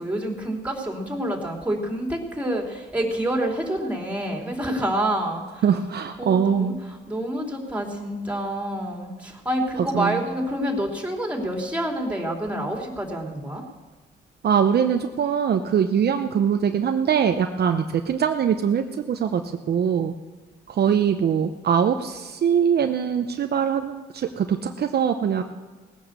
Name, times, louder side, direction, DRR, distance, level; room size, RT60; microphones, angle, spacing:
voice 1, 0.0-5.7 6.2-13.6, right 1 dB, 5° right, 1 dB, 3.5 m, -27 dB
voice 2, 5.6-6.8 9.9-10.2 14.4-19.4 19.7-20.1 20.7-25.4, right 7 dB, 55° right, 6 dB, 0.8 m, -22 dB
18.5 x 9.3 x 6.8 m, 1.4 s
cardioid pair, 90°, 20 cm